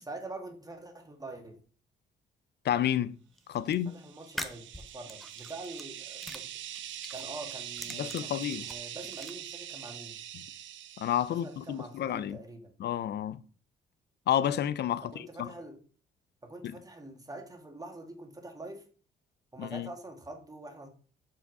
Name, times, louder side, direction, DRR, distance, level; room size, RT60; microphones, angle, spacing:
voice 1, 0.1-1.6 3.6-6.5 7.1-10.2 11.3-12.7 15.0-15.8 16.4-18.9 19.5-20.9, right 2 dB, 20° right, 1.7 m, -45 dB
voice 2, 2.6-3.2 3.5-4.0 7.9-8.7 11.0-12.4 12.8-13.4 14.3-15.5 16.6-16.8 19.6-19.9, left 10 dB, 55° left, 0.5 m, -30 dB
sound 1, 3.4-3.7 4.2-5.9 6.2-7.3 7.6-9.3, equal, ahead, 0.8 m, -43 dB
sound 2, 3.9-11.7, right 11 dB, 70° right, 0.6 m, -43 dB
5.7 x 5.1 x 4.8 m
cardioid pair, 90°, 20 cm